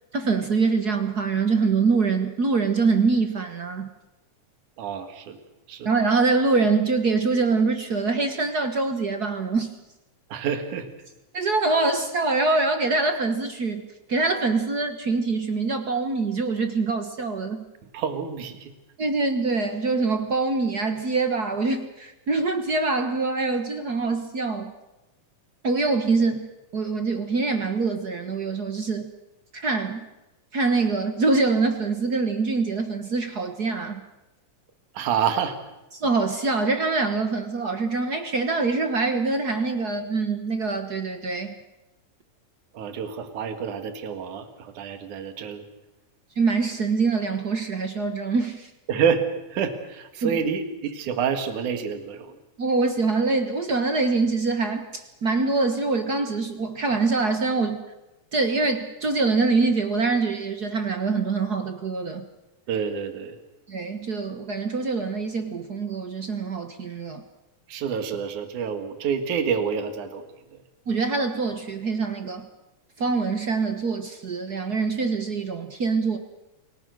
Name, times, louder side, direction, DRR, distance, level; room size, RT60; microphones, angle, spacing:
voice 1, 0.1-3.9 5.8-9.7 11.3-13.8 14.1-17.7 19.0-24.7 25.6-29.1 29.5-30.0 30.5-34.0 35.9-41.5 46.4-48.7 50.2-50.4 52.6-57.8 58.3-62.2 63.7-67.2 70.9-72.5 73.0-76.2, right 4 dB, 50° right, 8 dB, 1.2 m, -24 dB
voice 2, 4.8-5.4 5.7-5.9 10.3-10.9 17.9-18.7 34.9-35.6 42.7-45.6 48.9-49.2 49.5-52.3 62.7-63.4 67.7-70.2 70.5-70.6, right 7 dB, 70° right, 9 dB, 3.2 m, -28 dB
28.5 x 18.0 x 6.5 m, 1.0 s
omnidirectional pair, 3.7 m